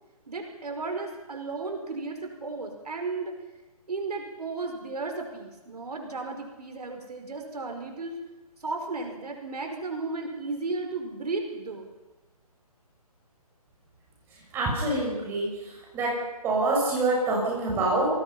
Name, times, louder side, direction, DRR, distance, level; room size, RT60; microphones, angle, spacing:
voice 1, 0.3-3.4 3.9-8.2 8.6-11.9, right 3 dB, 80° right, 3 dB, 5.3 m, -34 dB
voice 2, 14.5-16.1 16.4-18.1, right 2 dB, 10° right, -3 dB, 6.4 m, -26 dB
27.5 x 20.0 x 5.7 m, 1.1 s
hypercardioid pair, 165°, 20 cm